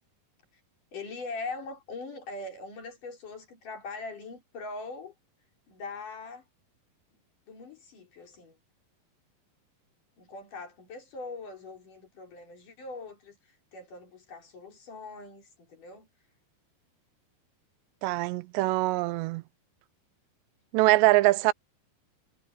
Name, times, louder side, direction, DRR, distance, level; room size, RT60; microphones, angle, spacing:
voice 1, 0.9-5.1 5.7-6.5 7.1-7.2 7.5-8.6 10.2-16.1, left 3 dB, 50° left, 5.9 m, -42 dB
voice 2, 18.0-19.4 20.7-21.5, right 19 dB, 85° right, 2.9 m, -23 dB
omnidirectional pair, 4.9 m